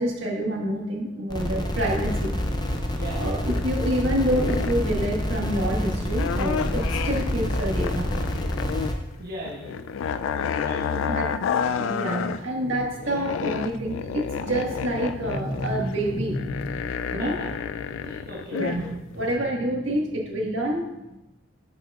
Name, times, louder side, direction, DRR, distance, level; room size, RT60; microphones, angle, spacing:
voice 1, 0.0-2.4 3.2-8.6 11.0-11.3 11.8-16.8 17.1-17.4 18.0-18.1 18.5-20.9, right 1 dB, 85° right, -1 dB, 1.6 m, -27 dB
sound 1, 1.3-8.9, left 1 dB, 20° left, 0.6 m, -27 dB
sound 2, 3.5-4.0 4.3-4.9 6.1-8.9 9.2-12.4 12.8-18.8 19.2-19.4, left 7 dB, 90° left, 0.3 m, -30 dB
voice 2, 9.2-10.0 10.3-11.3 17.2-17.5 18.0-18.9, right 1 dB, 50° right, -4 dB, 1.2 m, -38 dB
11.0 x 6.1 x 2.4 m, 0.95 s
head